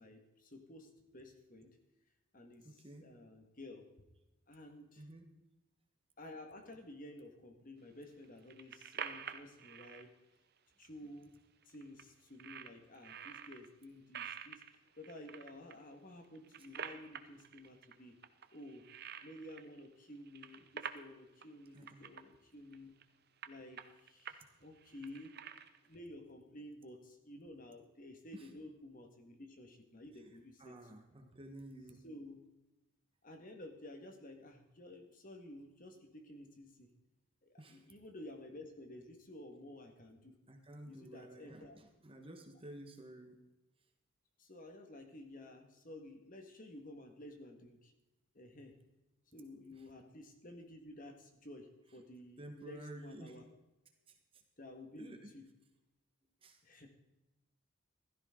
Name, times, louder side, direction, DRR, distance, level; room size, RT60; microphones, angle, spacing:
voice 1, 0.0-1.8 2.3-3.9 4.5-5.1 6.2-10.1 10.8-11.3 11.7-14.6 15.0-18.2 18.5-18.9 19.2-22.9 23.5-25.3 25.9-30.7 32.0-32.4 33.2-36.9 37.4-40.3 40.8-41.8 44.4-47.9 48.3-48.8 49.3-53.4 54.6-55.5 56.6-56.9, left 1 dB, 40° left, 5 dB, 1.8 m, -52 dB
voice 2, 2.6-3.0 5.0-5.3 21.7-22.0 28.3-28.5 30.2-30.3 30.6-32.0 37.6-37.9 40.5-43.4 49.8-49.9 52.4-53.4 54.1-54.4 55.0-55.3 56.4-56.6, right 1 dB, 25° right, 4 dB, 1.4 m, -52 dB
sound 1, 8.2-10.0 10.8-10.9 11.2-11.3 11.6-12.0 12.4-13.7 14.1-15.7 16.2-17.9 18.2-19.9 20.2-21.1 21.4-21.5 21.8-22.2 22.7-23.0 23.4-24.4 24.8-25.9, right 7 dB, 45° right, 0.8 m, -48 dB
15.5 x 13.5 x 3.9 m, 0.99 s
head